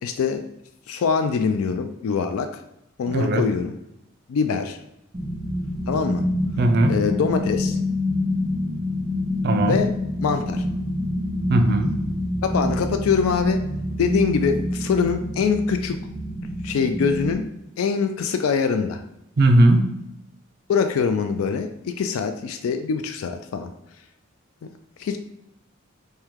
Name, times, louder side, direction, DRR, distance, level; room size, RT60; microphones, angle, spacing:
voice 1, 0.0-0.4 0.9-2.6 3.0-3.8 4.3-4.8 5.9-6.2 6.9-7.8 9.7-9.9 10.2-10.7 12.4-13.6 14.0-16.0 16.3-17.4 17.8-19.0 20.7-23.7 24.6-24.7 25.0-25.2, left 6 dB, 80° left, 7 dB, 0.3 m, -23 dB
voice 2, 3.1-3.4 6.6-7.0 9.4-9.8 11.5-11.9 19.4-19.9, right 1 dB, 50° right, 6 dB, 0.4 m, -18 dB
sound 1, 5.1-17.3, left 1 dB, 20° right, 0.8 m, -26 dB
4.6 x 2.2 x 3.5 m, 0.82 s
head